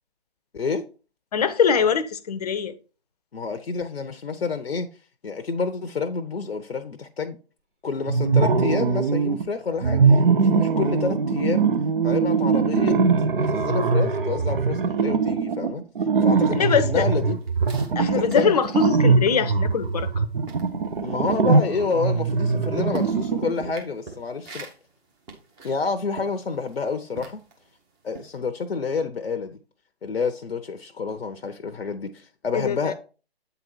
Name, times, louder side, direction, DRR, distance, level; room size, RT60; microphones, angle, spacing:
voice 1, 1.3-2.7 16.6-17.1 18.0-20.2 32.5-32.8, left 6 dB, 40° left, 0.7 m, -22 dB
voice 2, 3.3-4.9 5.2-7.4 7.8-11.7 12.0-13.0 13.3-15.8 16.2-17.4 18.1-18.6 21.0-24.7 25.6-27.4 28.0-29.6 30.0-32.9, left 4 dB, 70° left, 0.7 m, -28 dB
sound 1, 8.1-9.4 9.8-23.7, right 5 dB, 55° right, 0.9 m, -22 dB
sound 2, 16.4-20.2 20.4-27.7 28.1-28.4, right 3 dB, 15° right, 0.9 m, -42 dB
8.2 x 3.9 x 4.5 m
figure-of-eight pair, 135°, 32 cm